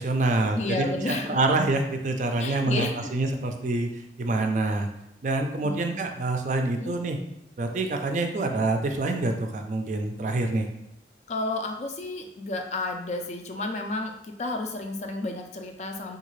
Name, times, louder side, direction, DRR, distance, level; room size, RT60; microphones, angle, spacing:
voice 1, 0.0-2.9 3.1-3.9 4.2-4.9 5.2-7.2 7.6-10.7, right 2 dB, 45° right, 4 dB, 0.3 m, -26 dB
voice 2, 0.5-1.4 2.4-3.1 5.6-5.8 6.7-6.9 11.3-16.2, left 2 dB, 40° left, 4 dB, 0.3 m, -31 dB
3.7 x 2.4 x 3.1 m, 0.85 s
head